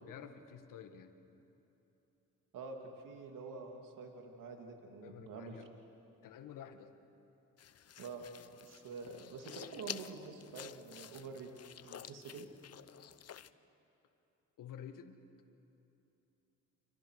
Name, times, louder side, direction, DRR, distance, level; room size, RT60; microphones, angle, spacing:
voice 1, 0.1-1.2 5.0-5.7 6.2-6.9 14.6-15.2, left 9 dB, 70° left, 8 dB, 1.8 m, -50 dB
voice 2, 2.5-5.6 8.0-11.5 11.8-12.5, right 4 dB, 70° right, 3 dB, 2.8 m, -47 dB
sound 1, 7.6-13.5, left 9 dB, 50° left, 0.9 m, -50 dB
29.5 x 27.0 x 6.5 m, 3.0 s
supercardioid pair, 70°, 33 cm